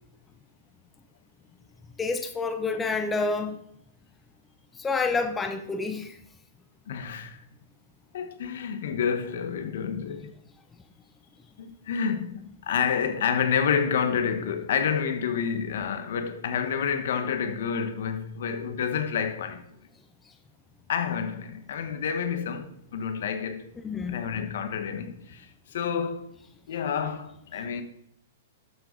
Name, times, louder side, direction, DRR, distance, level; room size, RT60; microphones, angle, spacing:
voice 1, 2.0-3.6 4.8-6.2 23.8-24.2, left 4 dB, 15° left, 0.8 m, -28 dB
voice 2, 6.9-7.4 8.1-10.3 11.6-19.6 20.9-23.7 24.1-26.3 26.7-27.8, left 7 dB, 70° left, 1.4 m, -29 dB
12.5 x 7.5 x 4.0 m
hypercardioid pair, 135°, 0 cm